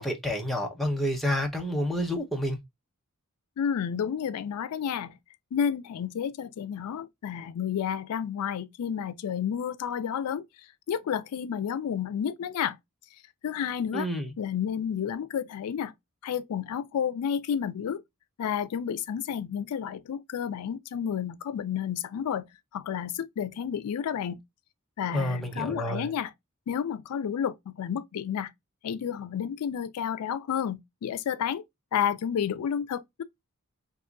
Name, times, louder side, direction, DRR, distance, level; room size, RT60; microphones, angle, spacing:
voice 1, 0.0-2.6 13.9-14.3 25.1-26.1, equal, ahead, 0.6 m, -29 dB
voice 2, 3.6-5.2 5.5-10.4 10.9-12.8 13.4-14.1 14.4-15.9 16.2-18.0 18.4-22.5 22.7-24.4 25.0-26.3 26.7-28.5 28.8-31.6 31.9-33.2, left 8 dB, 80° left, 0.3 m, -31 dB
2.9 x 2.3 x 3.6 m
head